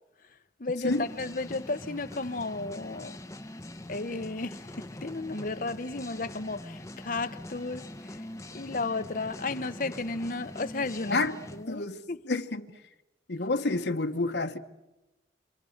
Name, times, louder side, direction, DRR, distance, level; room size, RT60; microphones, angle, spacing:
voice 1, 0.6-3.2 3.9-4.6 5.0-7.9 8.5-11.2 11.5-12.2, left 3 dB, 50° left, 0.8 m, -33 dB
sound 1, 0.9-11.6, left 1 dB, 15° left, 1.0 m, -43 dB
voice 2, 11.1-11.4 11.7-12.7 13.3-14.6, left 2 dB, 70° left, 1.2 m, -29 dB
27.0 x 27.0 x 6.5 m
head